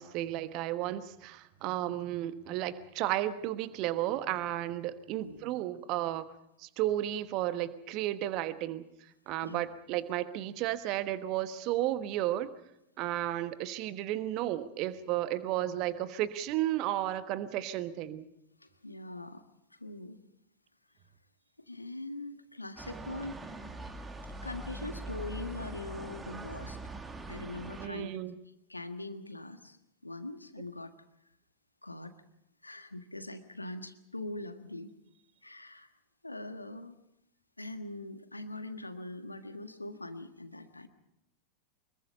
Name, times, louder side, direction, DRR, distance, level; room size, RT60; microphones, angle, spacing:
voice 1, 0.0-6.3 6.6-8.9 9.3-12.5 13.0-18.2 27.8-28.4, right 13 dB, 40° right, 12 dB, 1.3 m, -33 dB
voice 2, 18.6-19.4 19.7-20.2 21.7-23.4 24.4-26.8 27.3-28.1 28.7-29.8 30.0-30.9 31.8-32.1 32.6-35.0 35.4-35.9 36.2-36.9 37.6-40.9, left 2 dB, 85° left, 9 dB, 1.5 m, -42 dB
sound 1, 22.8-27.9, right 2 dB, 15° right, 2.0 m, -42 dB
24.5 x 22.0 x 5.5 m, 0.82 s
figure-of-eight pair, 90°, 0 cm